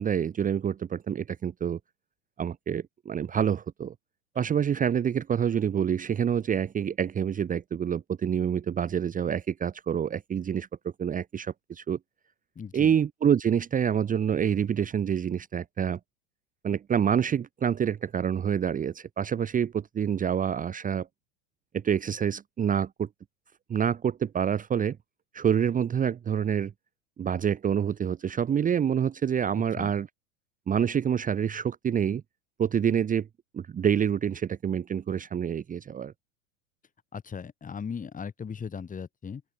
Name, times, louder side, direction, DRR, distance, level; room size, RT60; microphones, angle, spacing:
voice 1, 0.0-1.8 2.4-3.9 4.3-10.7 11.0-12.0 12.7-16.0 16.6-21.1 21.7-23.1 23.7-25.0 25.3-26.7 27.2-30.1 30.7-32.2 32.6-33.3 33.5-36.1, right 8 dB, 20° right, 1.3 m, -27 dB
voice 2, 12.5-12.9 29.8-29.9 37.1-39.4, left 6 dB, 20° left, 3.1 m, -37 dB
open air
figure-of-eight pair, 90°, 41 cm